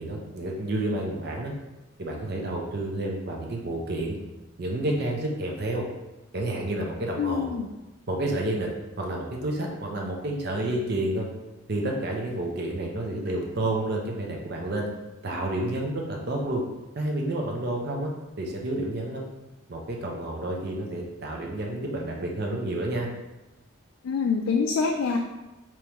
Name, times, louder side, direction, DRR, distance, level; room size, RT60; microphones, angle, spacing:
voice 1, 0.0-1.5 2.0-4.2 4.6-5.9 6.3-7.5 8.1-8.7 9.0-11.3 11.7-14.9 15.2-16.6 16.9-18.1 18.4-19.2 19.7-23.1, right 1 dB, 50° right, 0 dB, 0.6 m, -30 dB
voice 2, 7.2-7.7 24.0-25.2, left 5 dB, 70° left, 1 dB, 0.3 m, -25 dB
3.5 x 3.0 x 2.9 m, 1.0 s
head